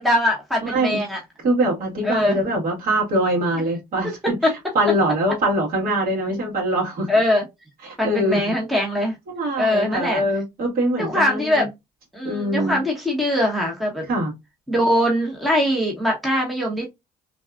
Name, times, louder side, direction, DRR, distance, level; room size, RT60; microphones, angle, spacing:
voice 1, 0.0-1.2 2.0-2.4 7.1-7.4 8.0-9.1 9.6-10.2 11.0-11.7 12.1-14.0 14.7-16.9, left 1 dB, ahead, 1.0 m, -21 dB
voice 2, 0.6-1.0 1.4-4.4 4.7-7.1 7.8-8.5 9.3-11.7 12.2-12.8 14.1-14.3, right 1 dB, 60° right, 1.9 m, -23 dB
3.3 x 2.3 x 2.4 m
cardioid pair, 110°, 17 cm